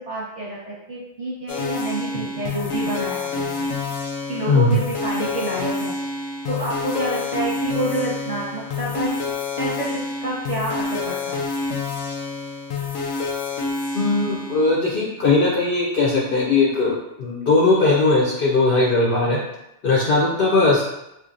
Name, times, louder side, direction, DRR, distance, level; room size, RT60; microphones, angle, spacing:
voice 1, 0.1-3.7 4.3-5.9 6.5-9.1 9.6-11.5, right 1 dB, 30° right, -7 dB, 0.8 m, -28 dB
sound 1, 1.5-14.7, left 3 dB, 80° left, 0.9 m, -28 dB
voice 2, 13.9-19.4 19.8-20.8, left 3 dB, 60° left, -4 dB, 0.6 m, -19 dB
4.3 x 2.4 x 2.5 m, 0.87 s
omnidirectional pair, 1.3 m